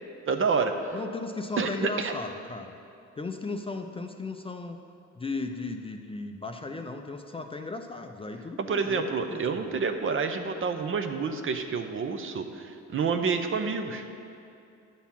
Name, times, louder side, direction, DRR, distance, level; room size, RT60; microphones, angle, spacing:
voice 1, 0.3-1.0 1.6-2.1 8.6-14.0, right 5 dB, 45° right, 7 dB, 0.7 m, -28 dB
voice 2, 0.9-2.8 3.2-4.8 5.2-9.7, left 3 dB, 20° left, 5 dB, 0.4 m, -36 dB
10.0 x 4.1 x 7.2 m, 2.5 s
cardioid pair, 90°, 30 cm